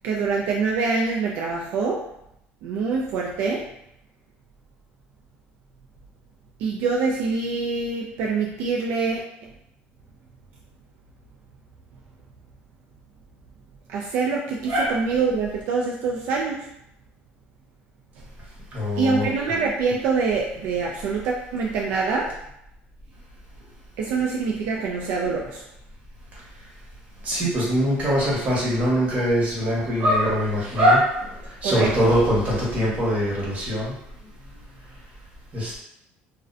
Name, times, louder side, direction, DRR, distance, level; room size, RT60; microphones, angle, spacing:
voice 1, 0.0-2.0 2.6-3.7 6.6-9.5 13.9-16.7 19.0-22.3 24.0-25.6 31.6-32.1, right 4 dB, 75° right, -2 dB, 0.3 m, -25 dB
voice 2, 14.7-15.0 18.7-19.3 27.2-33.9 35.5-35.8, equal, 35° right, -6 dB, 1.1 m, -22 dB
2.4 x 2.1 x 2.4 m, 0.79 s
cardioid pair, 120°, 4 cm